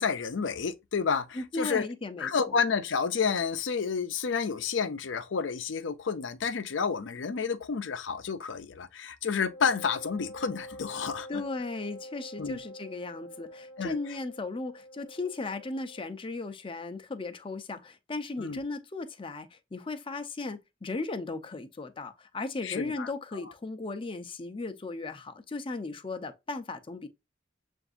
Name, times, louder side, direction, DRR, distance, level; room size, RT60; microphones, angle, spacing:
voice 1, 0.0-1.9 2.2-11.4 12.4-12.6 13.8-14.0 18.4-18.6 22.6-23.4, left 6 dB, 75° left, 0.6 m, -30 dB
voice 2, 1.3-2.3 11.3-27.1, left 3 dB, 30° left, 0.5 m, -36 dB
Wind instrument woodwind instrument, 9.5-16.1, equal, 45° left, 0.9 m, -46 dB
6.9 x 2.6 x 2.4 m
head